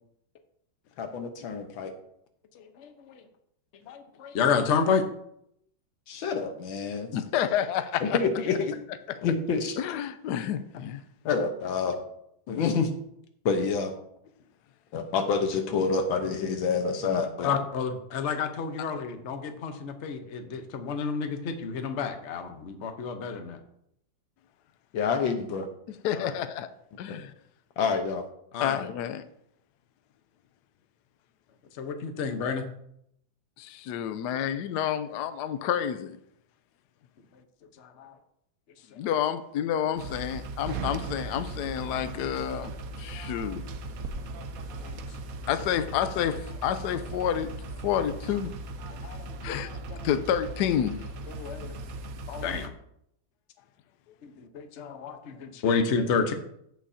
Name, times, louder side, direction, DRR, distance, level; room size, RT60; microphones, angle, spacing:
voice 1, 1.0-1.9 6.1-7.1 8.0-8.7 9.2-9.8 11.2-12.0 12.5-12.9 13.4-13.9 14.9-17.5 24.9-25.7 27.1-27.2 27.8-28.2, left 5 dB, 90° left, 1.8 m, -27 dB
voice 2, 2.5-3.2 3.9-5.0 17.4-23.6 26.1-26.3 28.5-28.8 31.8-32.6 37.3-37.4 37.8-38.2 38.9-39.0 44.7-45.0 49.0-49.6 49.9-50.1 51.3-51.8 52.3-52.7 54.2-56.3, left 5 dB, 45° left, 1.0 m, -30 dB
voice 3, 7.1-8.2 9.8-11.0 26.0-26.7 27.0-27.3 28.6-29.3 33.6-36.2 39.0-43.6 45.5-47.5 47.8-48.5 49.1-49.2 49.4-49.7 50.0-51.1, left 9 dB, 70° left, 1.0 m, -29 dB
sound 1, 40.0-52.7, right 2 dB, 65° right, 0.9 m, -38 dB
15.5 x 6.4 x 2.7 m
omnidirectional pair, 2.1 m